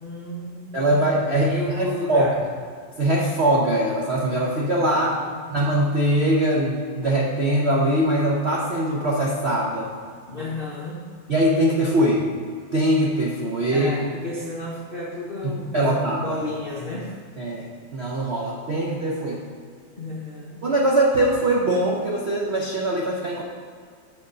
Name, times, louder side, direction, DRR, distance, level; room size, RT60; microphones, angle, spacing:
voice 1, 0.0-2.4 5.0-5.5 10.3-11.1 13.7-17.2 20.0-20.6, left 2 dB, 50° left, -5 dB, 0.6 m, -32 dB
voice 2, 0.7-2.3 3.0-5.2 5.5-9.9 11.3-12.3 12.7-13.9 15.4-16.4 17.4-17.7 17.9-19.4 20.6-23.4, right 1 dB, 60° right, -4 dB, 0.7 m, -22 dB
6.4 x 6.3 x 5.4 m, 2.1 s
omnidirectional pair, 2.3 m